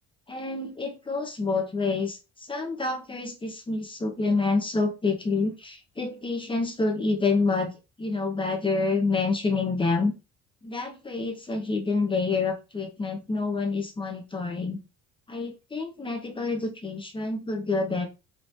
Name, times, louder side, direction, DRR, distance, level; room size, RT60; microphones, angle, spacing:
voice 1, 0.3-7.7 8.0-10.1 10.6-14.8 15.3-18.1, left 3 dB, 15° left, 0.7 m, -28 dB
3.5 x 3.1 x 2.6 m
cardioid pair, 120°, 32 cm